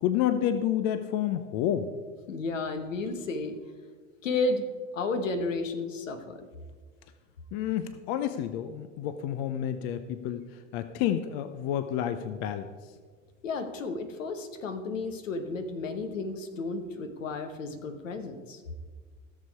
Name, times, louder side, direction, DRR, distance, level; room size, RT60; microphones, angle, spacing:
voice 1, 0.0-1.9 7.5-10.4 10.7-12.7, left 10 dB, 60° left, 11 dB, 0.7 m, -29 dB
voice 2, 2.3-3.5 4.2-4.7 4.9-6.4 13.4-18.6, left 3 dB, 85° left, 8 dB, 1.2 m, -32 dB
15.5 x 6.8 x 4.6 m, 1.5 s
hypercardioid pair, 80°, 37 cm